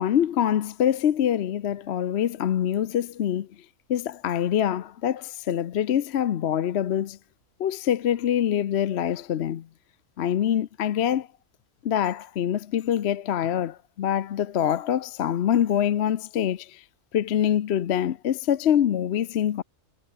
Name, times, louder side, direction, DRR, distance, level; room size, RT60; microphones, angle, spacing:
voice 1, 0.0-3.5 3.9-7.2 7.6-9.7 10.2-11.3 11.8-16.8 17.1-19.6, left 10 dB, 55° left, 0.8 m, -25 dB
omnidirectional pair, 1.5 m